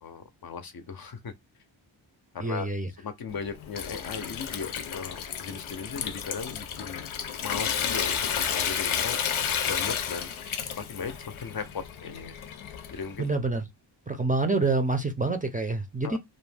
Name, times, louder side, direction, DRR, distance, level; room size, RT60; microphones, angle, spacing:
voice 1, 0.0-1.3 2.3-2.7 3.0-7.1 7.4-9.2 9.7-10.3 10.8-12.3 12.9-13.3 16.0-16.2, left 5 dB, 50° left, 0.5 m, -37 dB
voice 2, 2.4-2.9 13.2-13.6 14.1-16.2, right 3 dB, 20° right, 0.4 m, -27 dB
Water tap faucet / Sink (filling or washing) / Trickle dribble, 3.3-13.2, left 8 dB, 90° left, 0.6 m, -32 dB
2.5 x 2.1 x 3.3 m
wide cardioid pair, 75°, 47 cm